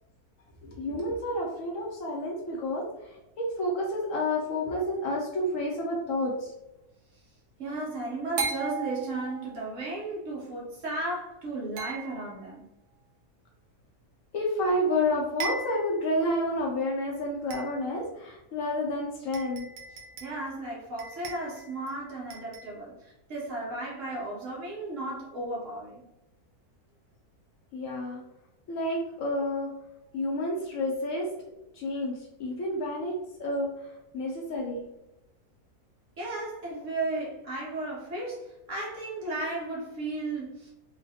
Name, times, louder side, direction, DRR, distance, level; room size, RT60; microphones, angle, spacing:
voice 1, 0.6-6.5 14.3-19.7 27.7-28.2 28.7-29.7 30.1-31.3 31.7-33.1 33.4-34.9, left 1 dB, 70° left, -1 dB, 0.9 m, -30 dB
sound 1, 4.7-5.3 8.4-9.7 11.8-12.6 14.6-14.7 15.1-15.2 15.4-16.0 16.6-16.7 17.5-18.0 18.9-19.0 19.3-20.5 21.0-21.9 22.3-22.8, right 5 dB, 80° right, 1.1 m, -37 dB
voice 2, 7.6-12.6 20.2-26.1 36.2-40.7, right 2 dB, 60° right, -4 dB, 1.1 m, -35 dB
3.1 x 2.1 x 2.7 m, 0.90 s
omnidirectional pair, 1.6 m